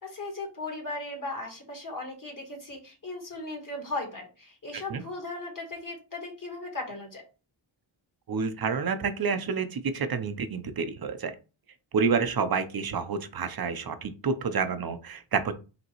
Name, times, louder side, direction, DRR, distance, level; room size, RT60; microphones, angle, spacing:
voice 1, 0.0-7.2, left 2 dB, 45° left, 1 dB, 1.7 m, -37 dB
voice 2, 8.3-11.3 11.9-15.5, right 5 dB, 50° right, 10 dB, 0.7 m, -29 dB
5.1 x 2.9 x 3.0 m, 0.32 s
wide cardioid pair, 75°, 46 cm